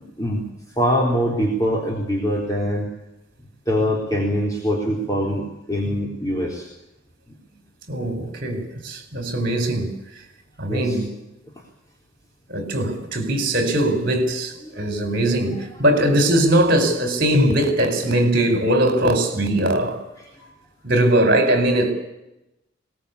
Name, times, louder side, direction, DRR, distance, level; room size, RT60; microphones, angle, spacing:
voice 1, 0.8-2.9 3.7-6.7 10.7-11.0 14.6-14.9 20.2-20.5, equal, 20° left, 3.6 m, -23 dB
voice 2, 7.9-9.9 10.6-11.1 12.5-20.0 20.8-21.9, right 1 dB, 50° right, 4.4 m, -20 dB
22.0 x 19.5 x 8.3 m
head